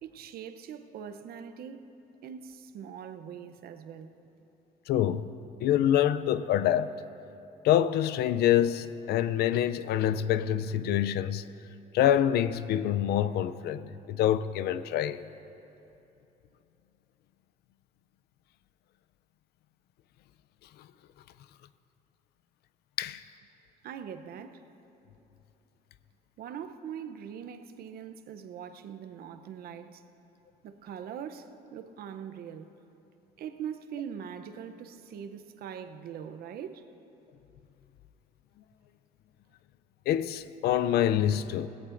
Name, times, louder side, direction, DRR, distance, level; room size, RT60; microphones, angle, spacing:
voice 1, 0.0-1.9 2.2-4.2 23.8-24.6 26.4-30.0 30.6-32.7 33.4-36.9, right 8 dB, 65° right, 0.7 m, -42 dB
voice 2, 4.9-5.3 5.6-6.9 7.6-11.5 11.9-15.2 23.0-23.2 40.1-41.7, left 11 dB, 70° left, 0.5 m, -26 dB
18.0 x 16.5 x 2.6 m
cardioid pair, 110°, 17 cm